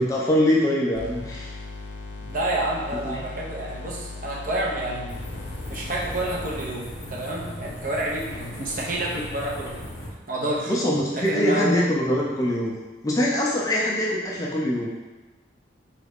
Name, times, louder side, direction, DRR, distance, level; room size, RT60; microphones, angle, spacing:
voice 1, 0.0-1.6 3.0-3.2 10.7-12.7 13.0-14.9, equal, 20° left, -3 dB, 0.3 m, -23 dB
sound 1, 0.9-6.7, left 3 dB, 80° left, 0.5 m, -38 dB
voice 2, 2.3-5.1 5.7-9.8 10.3-10.7 11.2-11.8, right 1 dB, 45° right, -3 dB, 0.6 m, -29 dB
sound 2, 5.1-10.1, equal, 40° left, 0.7 m, -37 dB
3.8 x 2.3 x 3.4 m, 1.2 s
head